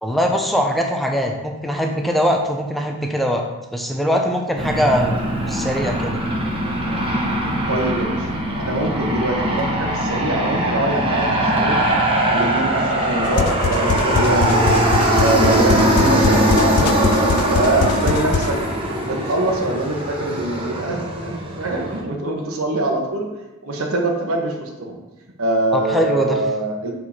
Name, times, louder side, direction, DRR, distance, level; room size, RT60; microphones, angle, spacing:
voice 1, 0.0-3.4 3.7-5.2 5.5-6.2 25.7-26.4, equal, ahead, 1 dB, 0.7 m, -21 dB
Aircraft, 4.6-22.0, right 1 dB, 25° right, 1.1 m, -21 dB
voice 2, 7.7-8.3 8.6-11.8 12.3-14.8 15.2-18.6 19.0-23.3 23.6-25.0 25.4-26.9, right 2 dB, 70° right, 1 dB, 1.2 m, -23 dB
sound 1, 13.2-18.6, left 5 dB, 80° left, 0.4 m, -23 dB
6.7 x 4.7 x 4.3 m, 1.1 s
head